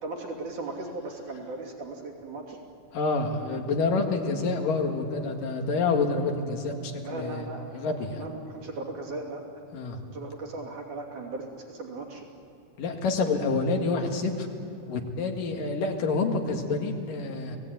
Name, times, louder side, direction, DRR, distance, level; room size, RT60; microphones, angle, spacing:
voice 1, 0.0-2.6 7.0-9.4 10.1-12.3, right 3 dB, 65° right, -1 dB, 4.4 m, -37 dB
voice 2, 2.9-8.3 9.7-10.0 12.8-14.5 14.9-17.6, left 3 dB, 85° left, 3 dB, 3.7 m, -28 dB
30.0 x 18.0 x 9.3 m, 2.6 s
omnidirectional pair, 3.7 m